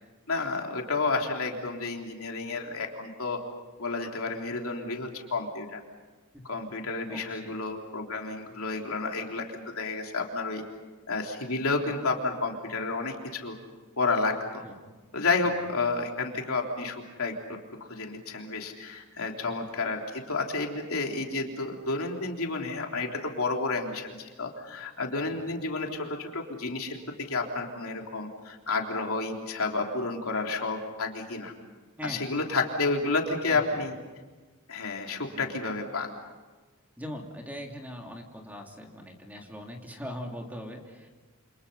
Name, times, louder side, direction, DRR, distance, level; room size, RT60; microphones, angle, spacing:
voice 1, 0.3-3.4 3.8-5.8 6.4-10.6 11.1-13.6 14.0-14.7 15.1-17.6 17.9-27.0 27.3-31.5 32.0-34.0 34.7-36.1, left 3 dB, 70° left, 1 dB, 3.6 m, -31 dB
voice 2, 7.1-7.6 14.6-14.7 25.3-25.4 32.0-32.2 33.2-33.8 35.2-35.6 37.0-41.1, equal, 10° right, 1 dB, 3.0 m, -41 dB
29.0 x 27.5 x 5.6 m, 1.3 s
head